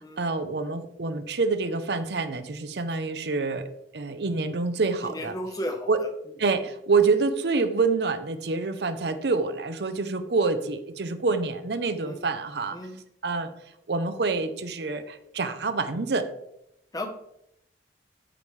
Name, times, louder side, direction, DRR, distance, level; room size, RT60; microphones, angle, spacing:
voice 1, 0.2-3.7 3.9-5.3 5.9-6.0 6.4-12.8 13.2-13.5 13.9-16.3, right 4 dB, 65° right, 10 dB, 0.7 m, -27 dB
voice 2, 5.0-6.1 12.0-12.2 12.7-13.0 16.9-17.1, left 1 dB, 20° left, 4 dB, 0.9 m, -34 dB
13.5 x 5.1 x 3.2 m, 0.81 s
head